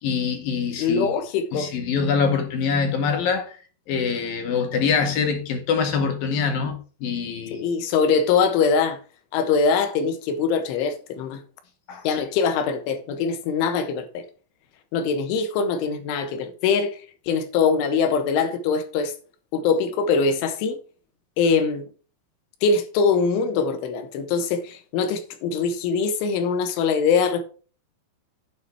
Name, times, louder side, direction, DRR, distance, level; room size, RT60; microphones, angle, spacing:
voice 1, 0.0-1.1 1.5-3.6 3.9-7.7 11.9-12.2, left 6 dB, 60° left, 3.1 m, -24 dB
voice 2, 0.8-1.7 7.5-9.0 9.3-11.4 12.1-14.2 14.9-17.0 17.3-19.1 19.5-20.8 21.4-21.9 22.6-27.4, left 5 dB, 90° left, 3.8 m, -22 dB
8.6 x 7.6 x 4.8 m
omnidirectional pair, 5.4 m